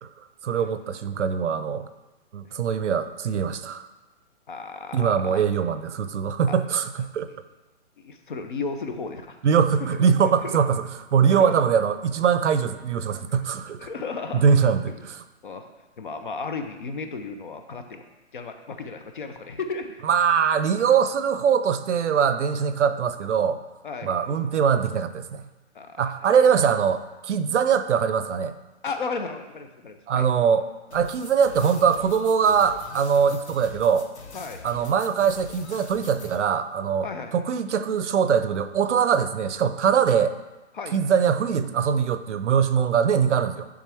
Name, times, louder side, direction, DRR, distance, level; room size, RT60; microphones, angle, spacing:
voice 1, 0.4-1.9 2.3-3.9 4.9-7.3 9.4-10.8 11.1-13.8 14.3-15.2 20.0-23.6 24.0-25.5 26.0-28.6 30.1-30.7 30.9-34.1 34.6-40.3 40.9-43.7, right 7 dB, 80° right, 11 dB, 0.6 m, -22 dB
voice 2, 4.5-5.4 8.0-9.4 9.9-10.6 11.3-11.5 13.8-14.4 15.4-15.7 16.0-18.0 18.3-20.0 23.8-24.2 25.7-26.0 28.8-30.3 30.9-31.0 34.3-34.6 37.0-37.3 40.7-41.0, left 4 dB, 45° left, 7 dB, 0.6 m, -34 dB
sound 1, 30.9-36.4, left 3 dB, 70° left, 1.1 m, -43 dB
9.7 x 3.6 x 3.4 m, 1.1 s
hypercardioid pair, 170°, 34 cm